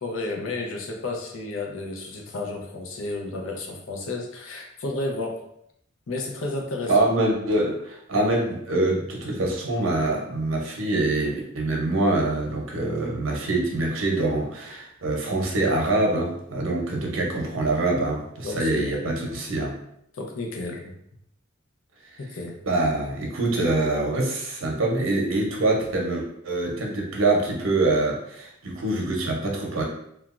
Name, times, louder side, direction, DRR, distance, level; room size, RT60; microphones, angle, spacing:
voice 1, 0.0-5.4 6.1-6.9 17.4-17.5 18.4-19.0 20.1-20.9 22.2-22.6, left 2 dB, 80° left, 1 dB, 0.6 m, -32 dB
voice 2, 6.9-19.8 22.7-29.8, right 2 dB, 75° right, 0 dB, 0.7 m, -25 dB
2.9 x 2.3 x 2.4 m, 0.73 s
head